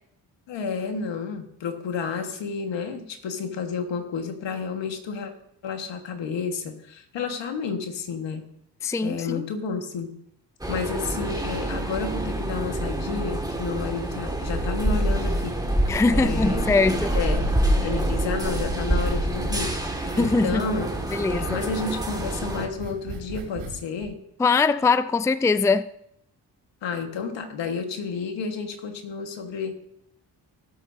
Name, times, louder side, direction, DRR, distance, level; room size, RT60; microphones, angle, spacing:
voice 1, 0.5-5.3 5.6-8.4 9.0-10.1 10.7-16.7 17.1-17.5 17.8-20.9 21.2-24.2 26.8-29.7, left 5 dB, 75° left, 1.6 m, -31 dB
voice 2, 8.8-9.5 15.9-17.1 20.2-20.6 21.1-21.5 24.4-25.9, left 4 dB, 5° left, 0.4 m, -22 dB
sound 1, 10.6-22.7, right 1 dB, 10° right, 2.0 m, -26 dB
sound 2, 16.8-17.6 17.9-18.7 19.1-20.4 20.7-23.7 24.0-24.1, right 3 dB, 90° right, 3.1 m, -39 dB
17.0 x 8.0 x 2.7 m
supercardioid pair, 50°, 45 cm